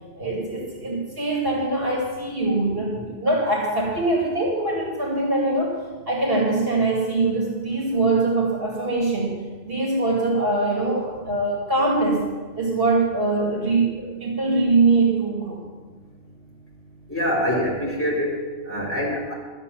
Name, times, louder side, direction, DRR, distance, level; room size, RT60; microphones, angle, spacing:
voice 1, 0.2-5.7 6.1-9.4 9.6-12.3 12.6-15.6 17.5-17.6, right 2 dB, 65° right, -2 dB, 2.8 m, -23 dB
voice 2, 17.1-19.3, equal, 10° left, -3 dB, 3.7 m, -25 dB
12.0 x 8.9 x 7.0 m, 1.4 s
omnidirectional pair, 1.1 m